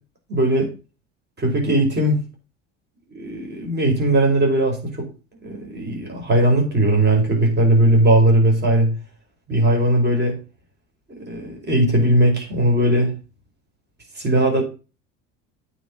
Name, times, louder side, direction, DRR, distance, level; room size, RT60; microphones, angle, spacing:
voice 1, 0.3-0.7 1.4-2.2 3.1-5.1 5.4-8.9 9.5-10.4 11.3-13.1 14.2-14.6, right 1 dB, 30° right, 5.4 m, -18 dB
9.4 x 6.1 x 6.9 m
hypercardioid pair, 70°, 35 cm